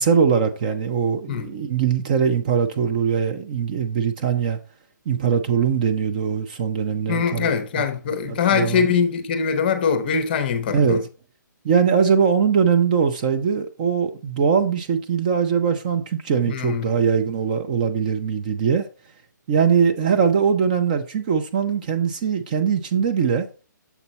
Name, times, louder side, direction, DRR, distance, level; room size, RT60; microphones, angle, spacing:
voice 1, 0.0-4.6 5.1-7.5 8.3-8.9 10.7-11.0 11.6-18.8 19.5-23.5, right 6 dB, 25° right, 0.5 m, -21 dB
voice 2, 7.1-11.0 16.4-16.9, left 6 dB, 30° left, 0.7 m, -22 dB
7.0 x 4.3 x 4.1 m
hypercardioid pair, 165°, 10 cm